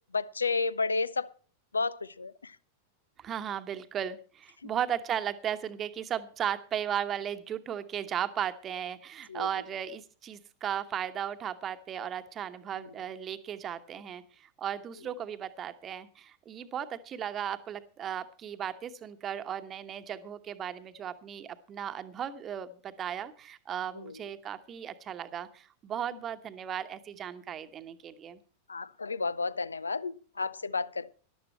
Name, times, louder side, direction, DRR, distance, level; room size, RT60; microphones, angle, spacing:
voice 1, 0.1-1.3 1.7-2.6 4.6-4.7 9.3-9.5 12.8-12.9 24.0-24.2 28.7-31.1, left 4 dB, 75° left, 0.5 m, -32 dB
voice 2, 3.2-28.4, right 9 dB, 25° right, 1.1 m, -36 dB
14.0 x 11.5 x 4.3 m
figure-of-eight pair, 90°, 0 cm